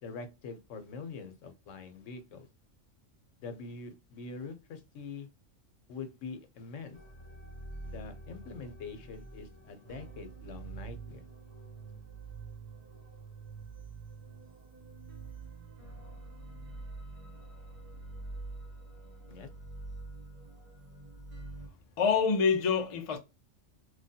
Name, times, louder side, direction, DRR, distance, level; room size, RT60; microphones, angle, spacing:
voice 1, 0.0-2.5 3.4-5.3 5.9-7.0 7.8-11.2 19.3-19.5, left 4 dB, 80° left, 1.0 m, -44 dB
sound 1, 6.9-21.7, right 3 dB, 35° right, 0.6 m, -46 dB
voice 2, 22.0-23.2, left 5 dB, 50° left, 0.4 m, -26 dB
3.2 x 2.3 x 2.7 m
omnidirectional pair, 1.3 m